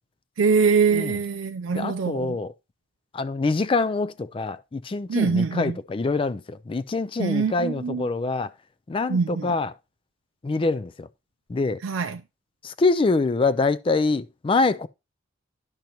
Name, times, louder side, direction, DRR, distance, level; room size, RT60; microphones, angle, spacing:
voice 1, 0.4-2.4 5.1-5.8 7.2-8.1 9.1-9.5 11.8-12.2, right 5 dB, 85° right, 0.4 m, -23 dB
voice 2, 1.7-2.5 3.1-8.5 8.9-9.7 10.4-11.1 11.5-11.8 12.6-14.9, left 3 dB, 25° left, 0.3 m, -25 dB
10.5 x 6.4 x 2.9 m
head